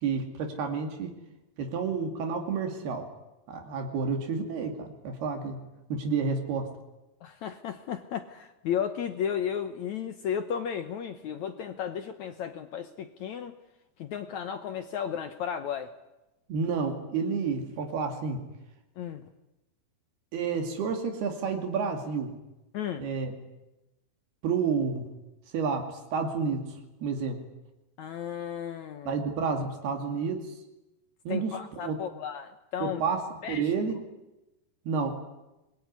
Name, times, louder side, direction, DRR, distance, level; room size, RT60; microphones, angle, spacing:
voice 1, 0.0-1.1 1.6-3.1 3.5-5.6 5.9-6.7 16.5-18.4 20.3-22.3 23.0-23.3 24.4-25.1 25.5-26.7 27.0-27.4 29.1-30.5 31.3-32.0 32.8-33.2 33.5-34.0 34.9-35.2, right 5 dB, 85° right, 4 dB, 4.5 m, -30 dB
voice 2, 7.2-13.6 14.0-15.9 19.0-19.3 22.7-23.1 28.0-29.2 31.3-33.0 33.4-33.7, left 8 dB, 65° left, 9 dB, 2.0 m, -34 dB
24.0 x 21.5 x 9.7 m, 0.97 s
omnidirectional pair, 4.4 m